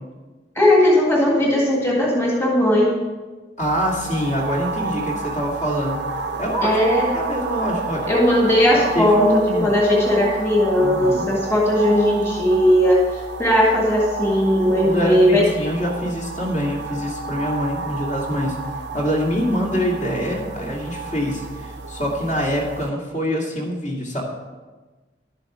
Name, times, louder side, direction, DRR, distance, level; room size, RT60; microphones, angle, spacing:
voice 1, 0.6-2.9 6.6-7.1 8.1-15.4, left 1 dB, 15° left, -3 dB, 1.9 m, -17 dB
voice 2, 3.6-6.0 6.4-6.8 7.1-8.1 8.7-9.7 10.8-11.2 14.8-18.6 18.9-24.2, equal, 45° left, -2 dB, 2.2 m, -25 dB
sound 1, 3.6-22.9, right 3 dB, 70° right, 0.7 m, -31 dB
11.5 x 9.0 x 4.9 m, 1.3 s
head